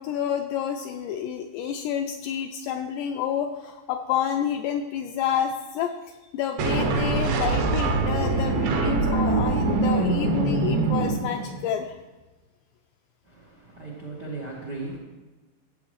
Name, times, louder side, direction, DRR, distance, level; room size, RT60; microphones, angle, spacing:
voice 1, 0.0-12.0, left 9 dB, 85° left, 3 dB, 2.5 m, -29 dB
sound 1, 6.6-11.7, right 3 dB, 70° right, 2.4 m, -24 dB
voice 2, 13.3-15.0, right 3 dB, 90° right, -4 dB, 0.9 m, -37 dB
17.0 x 7.9 x 3.2 m, 1.2 s
omnidirectional pair, 5.4 m